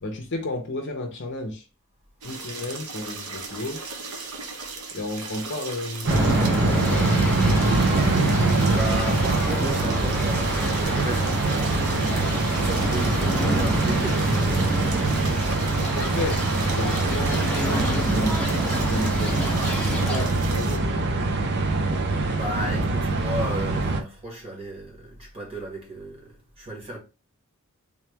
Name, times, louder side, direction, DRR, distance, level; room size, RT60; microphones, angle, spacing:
voice 1, 0.0-1.7 2.2-3.8 4.9-7.4 15.7-18.4 18.8-19.4 19.8-21.3, left 1 dB, 55° left, 0.7 m, -32 dB
sound 1, 2.2-20.8, right 4 dB, 80° right, 0.9 m, -37 dB
sound 2, 6.0-24.0, right 2 dB, 50° right, 0.6 m, -23 dB
sound 3, 6.1-20.3, equal, 5° left, 0.7 m, -31 dB
voice 2, 8.7-14.5 22.3-27.0, right 1 dB, 25° right, 1.7 m, -34 dB
3.7 x 3.1 x 3.3 m
head